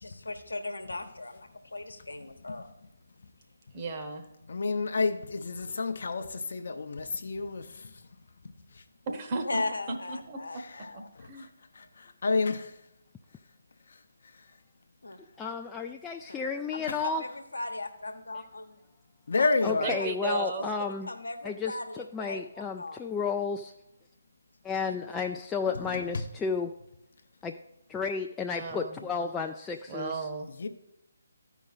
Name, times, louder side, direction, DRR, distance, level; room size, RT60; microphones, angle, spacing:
voice 1, 0.0-2.7 9.4-11.1 15.0-15.2 16.3-16.4 16.7-18.8 19.4-19.5 20.2-20.4 20.8-23.1 24.9-25.1, left 2 dB, 75° left, 1.0 m, -38 dB
voice 2, 3.7-4.3 9.1-10.4 10.9-11.5 19.8-20.7 28.5-29.1 29.9-30.7, right 3 dB, 30° right, 1.0 m, -35 dB
voice 3, 4.5-7.9 8.8-8.9 10.7-10.8 11.2-11.5 11.7-12.7 16.9-17.0 19.3-20.0 25.7-26.2 30.6-30.7, left 3 dB, 55° left, 0.7 m, -30 dB
voice 4, 15.4-17.2 19.6-21.1 21.4-23.7 24.6-26.7 27.4-27.5 27.9-30.2, left 5 dB, 10° left, 0.3 m, -32 dB
13.0 x 5.0 x 4.0 m
figure-of-eight pair, 145°, 0 cm